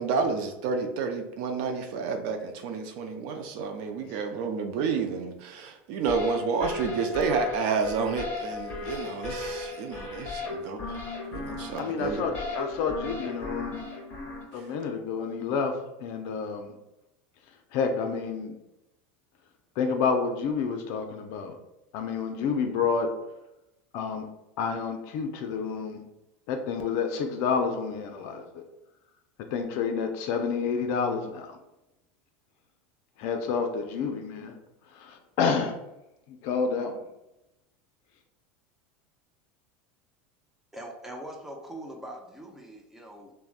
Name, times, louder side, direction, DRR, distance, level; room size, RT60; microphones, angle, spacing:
voice 1, 0.0-11.0 11.3-12.3 14.5-14.7, right 5 dB, 60° right, 5 dB, 0.4 m, -30 dB
sound 1, 6.1-14.4, left 3 dB, 30° left, 1.2 m, -36 dB
voice 2, 11.8-13.8 14.5-16.7 17.7-18.6 19.8-21.6 21.9-23.2 23.9-24.3 24.6-26.0 26.5-28.6 29.5-31.6 33.2-34.5 34.9-35.7 36.3-37.1, left 5 dB, 60° left, 5 dB, 0.4 m, -29 dB
voice 3, 40.7-43.3, right 1 dB, 5° right, 1 dB, 0.5 m, -42 dB
3.3 x 2.1 x 2.4 m, 0.90 s
supercardioid pair, 130°, 6 cm